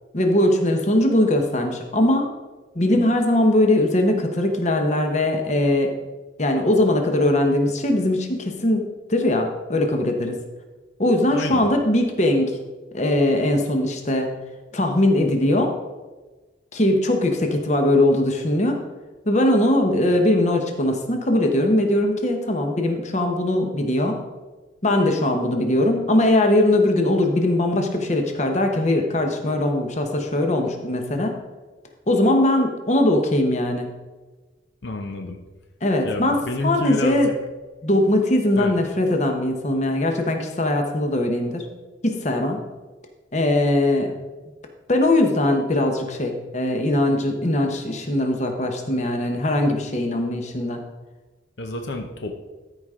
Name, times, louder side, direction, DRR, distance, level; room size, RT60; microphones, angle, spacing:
voice 1, 0.1-2.3 2.7-5.9 6.4-10.4 11.0-12.6 12.9-14.3 14.7-15.7 16.7-18.8 19.3-24.2 24.8-31.3 32.1-33.9 35.8-36.4 36.6-37.3 37.8-41.7 42.0-42.6 43.3-44.1 44.9-50.8, left 1 dB, 40° left, 4 dB, 1.0 m, -20 dB
voice 2, 11.3-11.7 34.8-35.4 36.0-37.3 38.6-38.7 51.6-52.4, left 2 dB, 70° left, 4 dB, 0.7 m, -29 dB
13.5 x 5.0 x 3.7 m, 1.2 s
head